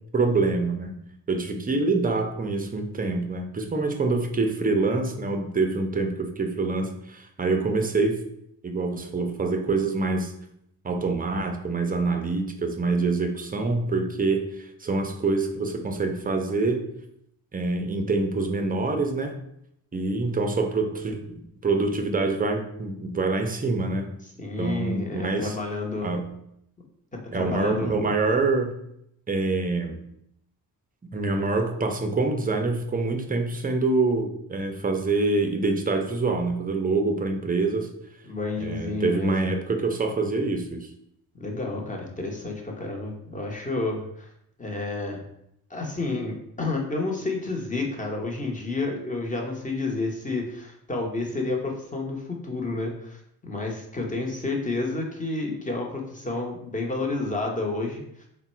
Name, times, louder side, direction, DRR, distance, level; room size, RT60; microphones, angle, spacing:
voice 1, 0.1-1.0 1.3-8.2 8.6-10.3 10.8-16.9 17.5-19.4 19.9-21.3 21.6-24.1 24.6-25.6 26.0-26.3 27.3-28.8 29.3-30.0 31.1-37.9 38.6-40.9, right 3 dB, 25° right, 5 dB, 0.5 m, -25 dB
voice 2, 24.4-26.1 27.3-27.9 38.3-39.4 41.3-44.3 44.6-45.2 45.7-58.0, left 3 dB, 20° left, 0 dB, 0.9 m, -30 dB
3.5 x 2.2 x 4.2 m, 0.75 s
cardioid pair, 80°, 39 cm